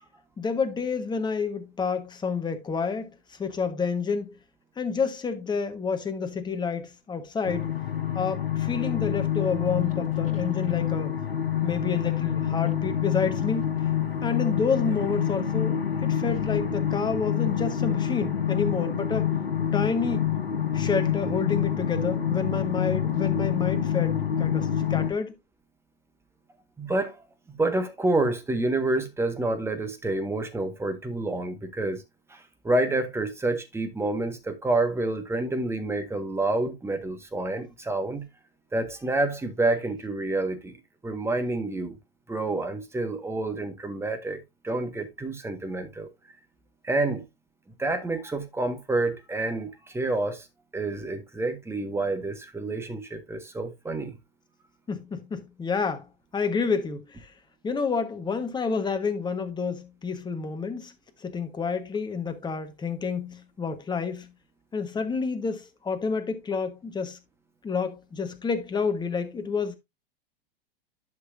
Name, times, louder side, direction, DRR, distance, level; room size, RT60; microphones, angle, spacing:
voice 1, 0.4-4.4 4.8-7.7 8.1-11.1 11.6-13.6 14.2-19.3 19.7-20.3 20.7-25.3 54.9-57.3 57.6-60.9 61.2-64.3 64.7-67.2 67.6-69.8, left 5 dB, 15° left, 1.4 m, -29 dB
sound 1, 7.4-25.1, left 9 dB, 85° left, 1.3 m, -27 dB
voice 2, 26.8-32.0 32.3-38.3 38.7-40.7 41.0-42.0 42.3-46.1 46.8-47.2 47.8-50.5 50.7-54.1, right 2 dB, 10° right, 1.6 m, -28 dB
11.5 x 5.9 x 2.7 m
figure-of-eight pair, 100°, 29 cm